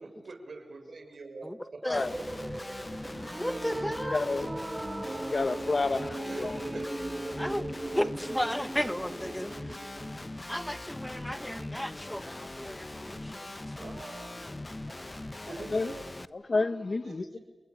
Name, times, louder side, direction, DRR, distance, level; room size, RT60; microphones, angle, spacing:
voice 1, 0.0-2.5 6.3-7.1 9.7-9.8 13.8-14.4 14.9-15.0 15.5-16.1 17.0-17.4, right 3 dB, 75° right, 6.3 m, -45 dB
Guitar, 1.9-16.3, left 2 dB, 30° left, 1.1 m, -41 dB
sound 1, 2.0-10.2, right 2 dB, 30° right, 2.0 m, -38 dB
voice 2, 3.4-4.2 7.4-7.6 7.9-9.8 10.5-13.5, equal, 5° left, 1.3 m, -34 dB
voice 3, 4.1-4.5 4.9-5.0 5.3-6.6 15.7-15.9 16.5-17.4, left 3 dB, 55° left, 1.2 m, -29 dB
29.5 x 20.5 x 8.6 m
cardioid pair, 45°, 0 cm